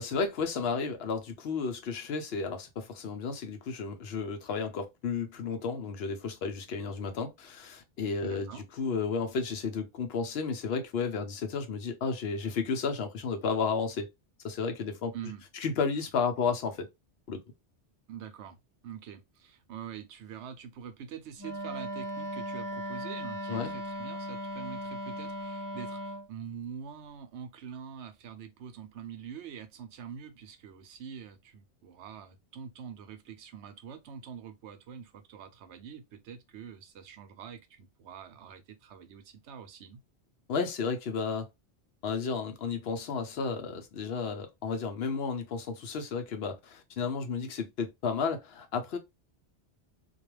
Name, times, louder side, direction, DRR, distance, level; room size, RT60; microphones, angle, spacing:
voice 1, 0.0-14.1 14.4-15.1 15.5-16.9 17.3-17.4 23.5-23.7 40.5-41.5 42.0-49.0, left 5 dB, 65° left, 0.8 m, -32 dB
voice 2, 8.2-8.6 15.1-15.4 18.1-18.6 18.8-40.0, right 7 dB, 80° right, 0.9 m, -45 dB
Wind instrument woodwind instrument, 21.4-26.3, equal, 30° right, 0.3 m, -37 dB
2.3 x 2.2 x 3.0 m
omnidirectional pair, 1.2 m